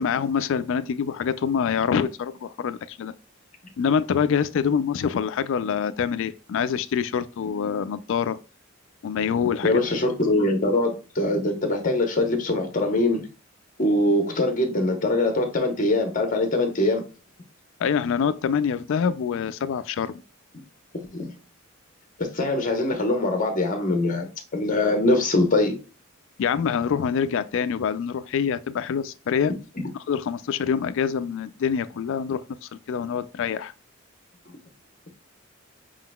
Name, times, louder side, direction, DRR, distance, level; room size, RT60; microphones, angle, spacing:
voice 1, 0.0-3.1 3.8-8.4 9.0-9.8 17.8-20.1 26.4-29.5 30.1-33.7, left 7 dB, 65° left, 0.3 m, -25 dB
voice 2, 9.6-13.2 13.8-17.0 21.1-21.3 22.2-24.3 24.5-25.7, left 2 dB, 40° left, 0.9 m, -23 dB
4.9 x 3.8 x 2.2 m
head